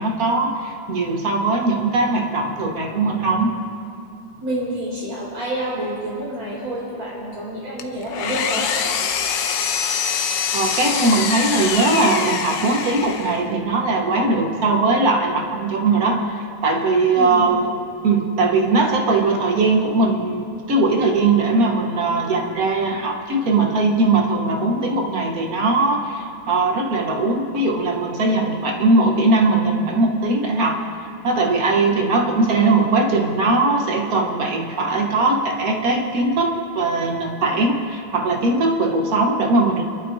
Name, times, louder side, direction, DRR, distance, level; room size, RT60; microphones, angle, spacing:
voice 1, 0.0-3.6 10.5-16.2 16.6-17.7 18.0-30.8 31.2-39.8, right 3 dB, 50° right, 1 dB, 1.3 m, -20 dB
voice 2, 4.4-8.7 17.2-17.6, right 1 dB, 90° right, -6 dB, 5.2 m, -28 dB
Engine, 7.8-13.5, left 7 dB, 70° left, 1.3 m, -24 dB
28.0 x 12.0 x 2.6 m, 2.6 s
omnidirectional pair, 2.3 m